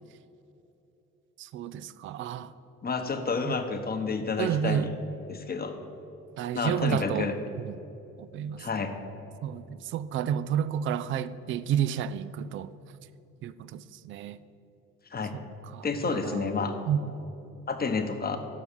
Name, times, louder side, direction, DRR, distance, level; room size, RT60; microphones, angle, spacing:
voice 1, 1.4-2.5 3.4-3.5 4.4-4.9 6.4-7.3 7.7-7.8 8.2-8.6 9.4-12.7 13.4-14.4 15.7-16.4 16.9-17.0, right 9 dB, 30° right, 0.4 m, -30 dB
voice 2, 2.8-4.9 5.3-5.7 6.5-7.3 8.6-8.9 15.1-15.3 15.8-16.7 17.7-18.4, left 4 dB, 20° left, 1.0 m, -30 dB
9.8 x 6.9 x 6.8 m
figure-of-eight pair, 50°, 42 cm